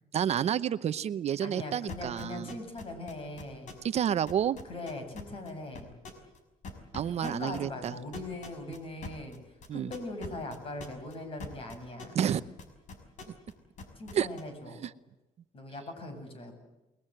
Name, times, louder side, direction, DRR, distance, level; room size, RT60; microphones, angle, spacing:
voice 1, 0.1-2.5 3.8-4.6 6.9-7.9 9.7-9.9 12.1-12.4 14.1-14.3 14.8-14.9, right 9 dB, 50° right, 14 dB, 0.8 m, -29 dB
voice 2, 1.4-3.8 4.6-5.9 7.2-12.2 14.0-14.9 15.5-16.5, left 2 dB, 40° left, 7 dB, 7.9 m, -41 dB
sound 1, 1.9-4.0 4.3-5.5 5.7-6.4 6.6-13.5 13.8-14.4, left 3 dB, 60° left, 5.9 m, -43 dB
29.5 x 20.5 x 7.9 m, 1.0 s
cardioid pair, 125°, 14 cm